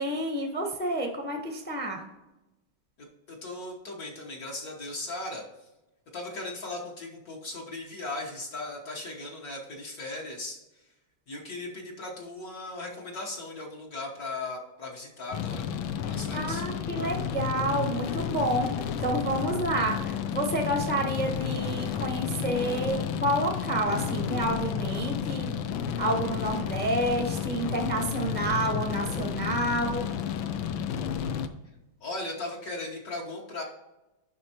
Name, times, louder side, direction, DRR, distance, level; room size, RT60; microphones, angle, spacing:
voice 1, 0.0-2.0 16.1-18.7 19.0-25.5 26.0-30.1, right 1 dB, 10° left, 1 dB, 0.7 m, -29 dB
voice 2, 3.0-5.7 6.1-10.9 11.3-15.7 16.1-16.6 32.0-33.6, left 2 dB, 55° left, -2 dB, 1.5 m, -38 dB
sound 1, 15.3-31.5, left 8 dB, 85° left, 1.4 m, -31 dB
9.6 x 6.0 x 2.9 m, 1.0 s
omnidirectional pair, 2.1 m